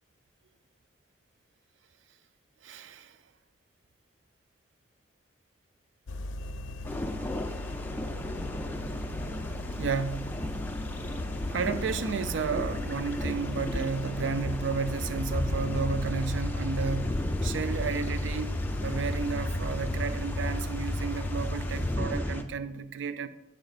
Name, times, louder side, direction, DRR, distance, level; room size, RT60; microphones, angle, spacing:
voice 1, 2.6-3.2 9.8-10.5 11.5-23.3, right 5 dB, 80° right, 0.4 m, -32 dB
sound 1, 6.1-22.0, left 2 dB, 90° left, 0.5 m, -39 dB
sound 2, 6.8-22.4, left 1 dB, 10° left, 0.4 m, -36 dB
sound 3, 15.1-22.4, left 1 dB, 10° right, 0.8 m, -34 dB
8.6 x 6.4 x 2.4 m
head